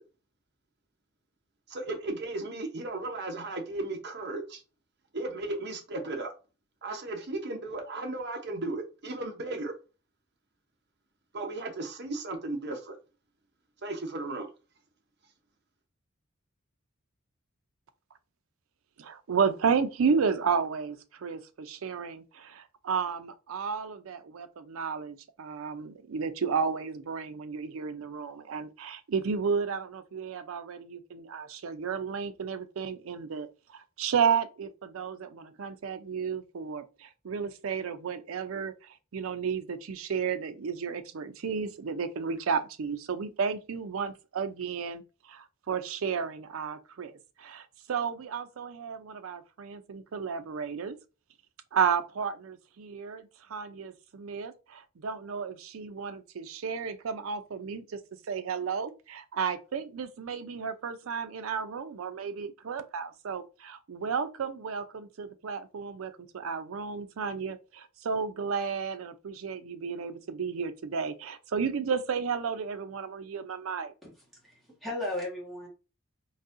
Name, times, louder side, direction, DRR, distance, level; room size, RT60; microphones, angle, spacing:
voice 1, 1.7-4.6 5.1-6.3 6.8-9.7 11.3-13.0 13.8-14.5, right 2 dB, 55° right, 0.9 m, -35 dB
voice 2, 19.0-51.0 51.7-58.0 58.3-73.9, right 6 dB, 80° right, 0.5 m, -32 dB
voice 3, 74.4-75.7, left 1 dB, ahead, 1.4 m, -35 dB
4.0 x 2.7 x 2.5 m
head